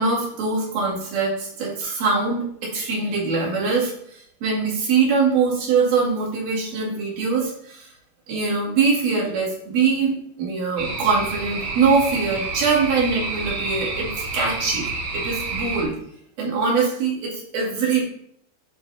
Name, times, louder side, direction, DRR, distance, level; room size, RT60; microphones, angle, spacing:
voice 1, 0.0-7.9 8.3-14.9 15.1-15.9 16.4-18.0, right 4 dB, 75° right, -4 dB, 4.0 m, -23 dB
sound 1, 10.8-15.8, right 3 dB, 60° right, 2.5 m, -29 dB
11.0 x 4.0 x 3.4 m, 0.69 s
omnidirectional pair, 4.2 m